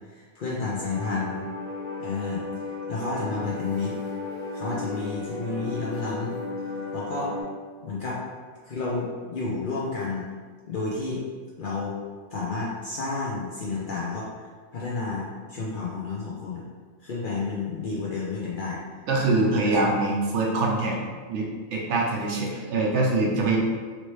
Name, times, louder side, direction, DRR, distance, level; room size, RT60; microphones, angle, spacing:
voice 1, 0.1-1.4 2.0-2.4 2.9-4.0 4.5-6.4 6.9-7.3 7.8-8.2 8.6-10.3 10.7-11.2 11.6-12.0 12.3-16.6 17.0-18.8 19.5-19.9, left 3 dB, 60° left, -5 dB, 0.6 m, -31 dB
sound 1, 0.7-7.4, left 3 dB, 25° left, 1.2 m, -35 dB
voice 2, 19.1-21.0 21.3-23.6, right 2 dB, 70° right, -2 dB, 0.9 m, -24 dB
2.9 x 2.8 x 3.1 m, 1.5 s
omnidirectional pair, 1.3 m